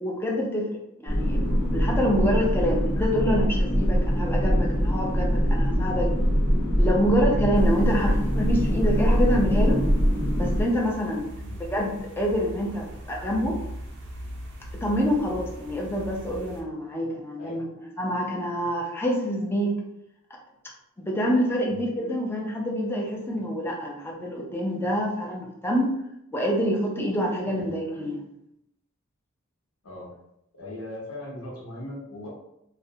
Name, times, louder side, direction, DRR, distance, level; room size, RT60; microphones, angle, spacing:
voice 1, 0.0-6.1 6.8-9.8 10.4-11.3 11.7-13.6 14.8-19.8 21.0-25.9 26.3-28.2, equal, 10° left, -2 dB, 0.4 m, -26 dB
sound 1, 1.1-10.6, equal, 50° left, 0.8 m, -23 dB
sound 2, 7.5-16.6, equal, 50° right, 0.4 m, -40 dB
voice 2, 30.5-32.3, left 1 dB, 80° left, -4 dB, 0.8 m, -39 dB
2.4 x 2.1 x 2.7 m, 0.80 s
head